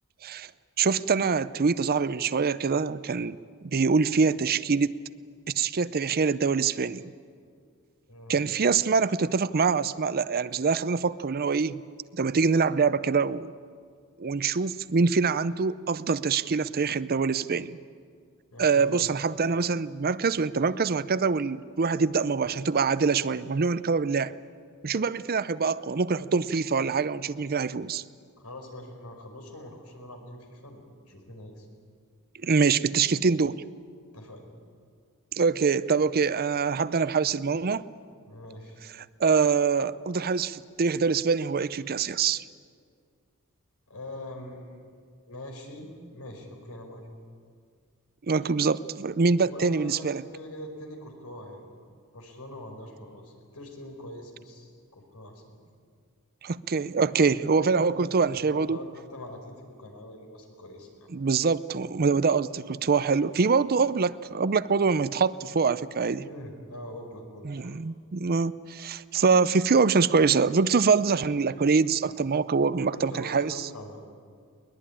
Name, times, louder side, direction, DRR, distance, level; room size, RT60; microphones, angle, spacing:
voice 1, 0.8-3.4 3.7-5.0 5.5-7.1 8.3-11.8 12.1-13.5 14.2-17.8 18.6-24.3 24.8-28.0 32.4-33.6 35.4-37.8 39.0-42.4 48.3-50.2 56.4-58.8 61.1-66.2 67.4-73.5, right 5 dB, 45° right, 16 dB, 0.6 m, -24 dB
voice 2, 18.5-19.1 28.4-30.8 31.1-31.7 34.1-34.5 38.2-38.8 43.9-44.8 45.3-47.0 49.4-51.6 52.1-55.6 57.6-61.1 66.2-67.8 72.0-72.1 72.8-74.0, left 1 dB, 85° left, 3 dB, 5.0 m, -43 dB
21.5 x 20.5 x 9.8 m, 2.1 s
head